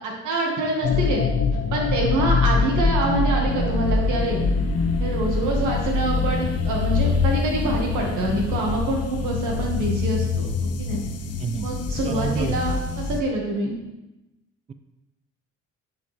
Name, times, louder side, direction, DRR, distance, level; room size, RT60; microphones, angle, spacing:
voice 1, 0.0-1.2 1.7-4.4 5.0-10.5 10.8-11.0 11.6-13.7, right 2 dB, 85° right, -1 dB, 1.9 m, -26 dB
sound 1, 0.8-13.2, left 4 dB, 55° left, 0.8 m, -24 dB
voice 2, 11.4-11.8 12.0-12.6, right 5 dB, 20° right, 10 dB, 0.4 m, -28 dB
9.4 x 4.9 x 3.4 m, 0.97 s
cardioid pair, 90°, 30 cm